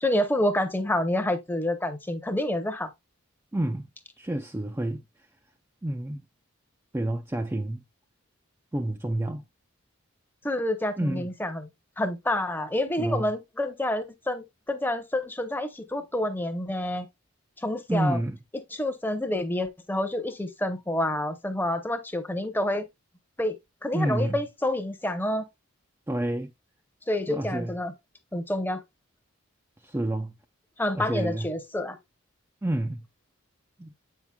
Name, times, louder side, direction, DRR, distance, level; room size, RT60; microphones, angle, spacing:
voice 1, 0.0-2.9 10.4-11.7 12.0-17.1 17.6-18.2 18.7-22.8 23.4-23.6 23.8-25.5 27.1-27.9 28.3-28.8 30.8-32.0, left 1 dB, 10° left, 0.7 m, -28 dB
voice 2, 3.5-3.9 4.2-5.0 5.8-6.2 6.9-7.8 8.7-9.4 11.0-11.3 13.0-13.3 17.9-18.4 23.9-24.4 26.1-26.5 27.3-27.8 29.8-30.3 30.9-31.5 32.6-33.0 33.8-33.9, right 1 dB, 10° right, 0.3 m, -29 dB
7.9 x 5.6 x 2.3 m
head